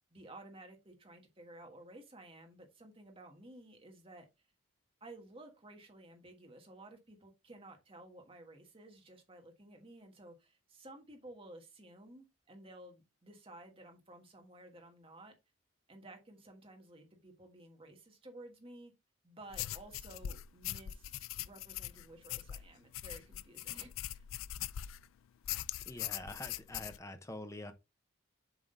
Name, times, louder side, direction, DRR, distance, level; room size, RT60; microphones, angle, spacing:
voice 1, 0.1-4.3 5.0-15.3 15.9-18.9 19.2-24.2, right 1 dB, 25° right, 1.4 m, -54 dB
sound 1, 19.5-25.1 25.4-27.0, left 13 dB, 75° left, 0.3 m, -41 dB
voice 2, 25.9-27.7, left 1 dB, 15° left, 0.7 m, -45 dB
7.3 x 3.8 x 3.8 m
head